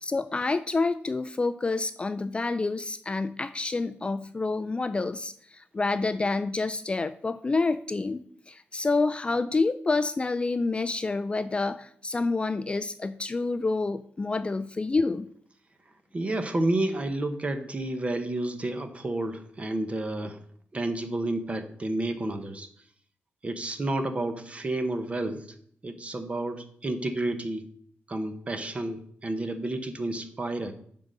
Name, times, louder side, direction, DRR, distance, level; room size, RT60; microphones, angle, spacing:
voice 1, 0.0-15.3, left 3 dB, 25° left, 12 dB, 0.3 m, -28 dB
voice 2, 16.1-20.4 20.7-22.7 23.4-25.5 25.8-27.7 28.1-30.7, right 2 dB, 30° right, 8 dB, 1.0 m, -30 dB
9.4 x 3.8 x 6.5 m, 0.62 s
wide cardioid pair, 120°, 4 cm